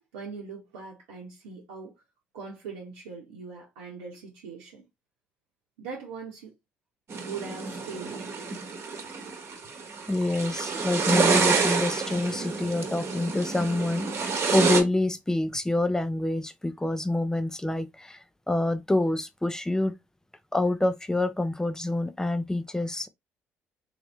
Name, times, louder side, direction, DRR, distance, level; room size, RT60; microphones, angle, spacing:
voice 1, 0.1-1.9 2.3-4.9 5.8-6.5 7.3-8.3, right 5 dB, 80° right, 0.9 m, -41 dB
sound 1, 7.1-14.8, right 4 dB, 45° right, 1.2 m, -28 dB
voice 2, 10.1-19.9 20.5-23.1, left 2 dB, 10° left, 0.6 m, -27 dB
3.3 x 2.8 x 3.1 m
hypercardioid pair, 50°, 6 cm